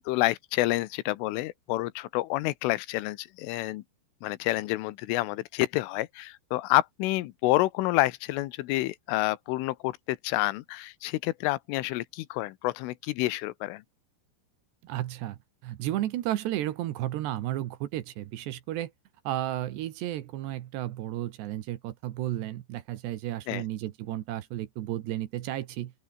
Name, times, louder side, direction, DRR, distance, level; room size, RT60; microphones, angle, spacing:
voice 1, 0.0-3.8 4.2-13.8 23.5-23.6, left 18 dB, 90° left, 3.5 m, -28 dB
voice 2, 14.8-15.4 15.6-18.9 19.2-25.9, right 14 dB, 70° right, 3.1 m, -33 dB
open air
omnidirectional pair, 5.6 m